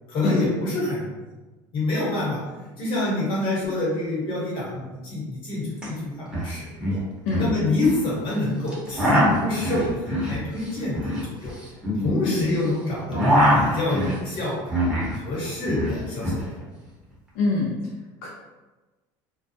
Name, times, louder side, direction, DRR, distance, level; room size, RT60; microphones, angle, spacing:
voice 1, 0.1-1.0 1.7-2.4 2.8-6.7 7.4-11.5 12.0-13.2 13.5-14.6 15.1-16.6, left 2 dB, 50° left, -5 dB, 1.1 m, -26 dB
sound 1, 5.8-5.9 6.1-6.5 6.8-8.0 8.7-12.6 12.9-15.2 15.4-16.4, equal, 10° right, 0.8 m, -23 dB
voice 2, 17.3-17.7 18.2-18.3, left 3 dB, 80° left, -3 dB, 0.5 m, -24 dB
2.2 x 2.0 x 2.7 m, 1.2 s
supercardioid pair, 115°, 11 cm